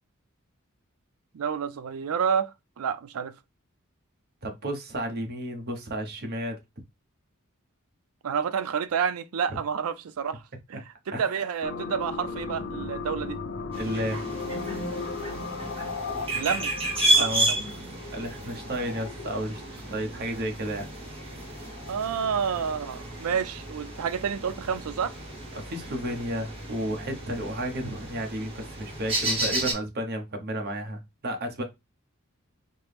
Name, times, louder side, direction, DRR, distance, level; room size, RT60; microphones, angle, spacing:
voice 1, 1.3-3.3 8.2-10.4 10.7-10.8 11.1-13.4 16.3-16.7 17.2-17.6 21.9-25.1, right 7 dB, 85° right, 0.4 m, -29 dB
voice 2, 4.4-6.6 9.5-9.6 11.1-11.4 13.8-14.2 17.1-17.5 18.1-20.9 25.5-31.6, right 1 dB, 50° right, 0.9 m, -32 dB
sound 1, 11.6-17.2, left 4 dB, 50° left, 0.6 m, -37 dB
sound 2, 13.7-29.7, right 1 dB, 25° right, 1.1 m, -32 dB
sound 3, 14.1-22.5 22.8-23.2, left 3 dB, 80° left, 0.8 m, -40 dB
4.3 x 2.0 x 3.3 m
head